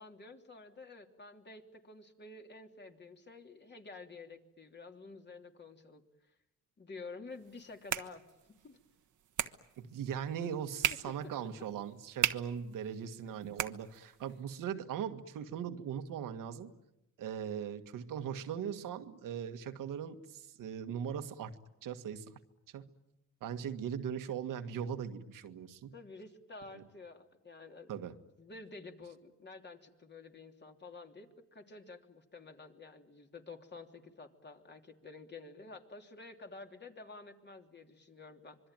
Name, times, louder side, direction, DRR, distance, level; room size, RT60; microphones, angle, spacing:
voice 1, 0.0-6.0 6.8-8.2 8.6-8.8 10.9-11.1 11.4-11.5 13.2-13.3 25.9-27.9 28.4-38.6, left 3 dB, 35° left, 4 dB, 3.2 m, -50 dB
sound 1, 7.4-14.4, right 10 dB, 65° right, 1.4 m, -39 dB
voice 2, 9.8-16.7 17.2-22.3 22.7-22.9 23.4-25.9 26.7-26.8 27.9-28.1, right 8 dB, 85° right, 8 dB, 1.8 m, -40 dB
25.5 x 23.0 x 9.2 m, 0.90 s
cardioid pair, 95°, 32 cm